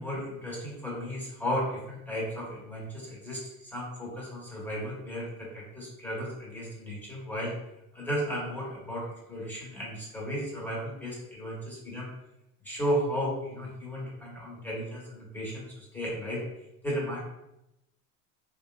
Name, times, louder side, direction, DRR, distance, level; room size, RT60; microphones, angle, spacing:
voice 1, 0.0-7.5 7.9-12.1 12.6-16.4 16.8-17.2, equal, 5° left, -5 dB, 1.0 m, -34 dB
2.8 x 2.3 x 2.4 m, 0.88 s
hypercardioid pair, 90°, 45 cm